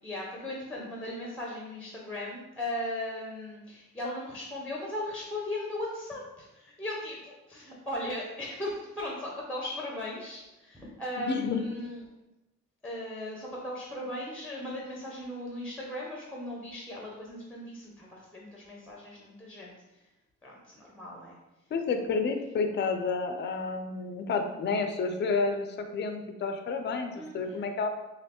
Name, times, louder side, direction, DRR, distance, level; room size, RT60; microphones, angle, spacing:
voice 1, 0.0-12.0 12.8-20.1 20.4-21.4 24.2-24.5 27.1-27.8, left 1 dB, 5° left, -3 dB, 0.7 m, -38 dB
voice 2, 11.2-11.6 21.7-27.9, left 4 dB, 35° left, 6 dB, 0.4 m, -30 dB
3.1 x 2.6 x 2.9 m, 0.98 s
supercardioid pair, 65°, 32 cm